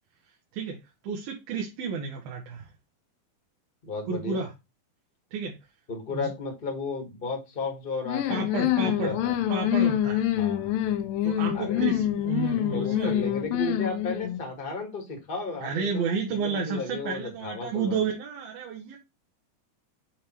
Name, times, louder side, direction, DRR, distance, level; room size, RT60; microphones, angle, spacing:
voice 1, 1.0-2.7 4.1-4.5 5.3-5.6 6.1-6.3 8.3-9.2 9.5-10.3 11.2-13.2 15.6-19.0, right 5 dB, 85° right, 3.1 m, -31 dB
voice 2, 3.8-4.4 5.9-9.4 10.3-10.8 11.5-12.1 12.5-18.0, left 3 dB, 25° left, 1.1 m, -34 dB
sound 1, 8.1-14.5, left 12 dB, 80° left, 2.4 m, -26 dB
7.4 x 3.4 x 4.4 m
omnidirectional pair, 4.1 m